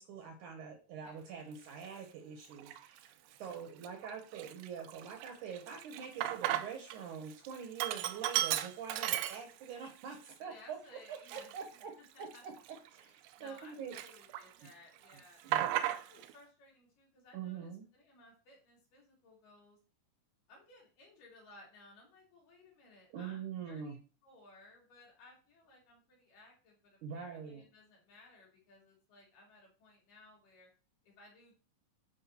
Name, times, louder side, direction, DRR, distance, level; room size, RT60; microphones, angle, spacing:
voice 1, 0.0-3.1 3.4-10.8 11.1-11.9 12.2-12.5 12.9-13.1 13.4-14.0 15.4-15.7 17.3-17.8 23.1-24.0 27.0-27.6, right 7 dB, 70° right, 4 dB, 2.2 m, -44 dB
Sink (filling or washing), 1.7-1.9 2.5-3.1 3.5-3.6 3.8-7.0 7.3-9.8 10.3-10.4 11.1-13.6 13.9-14.7 15.0-16.3, right 13 dB, 85° right, 2.5 m, -36 dB
voice 2, 3.5-4.6 10.5-12.4 13.4-19.8 20.5-30.7 31.0-31.6, left 2 dB, 65° left, -2 dB, 4.0 m, -60 dB
9.9 x 3.7 x 4.3 m, 0.36 s
omnidirectional pair, 4.3 m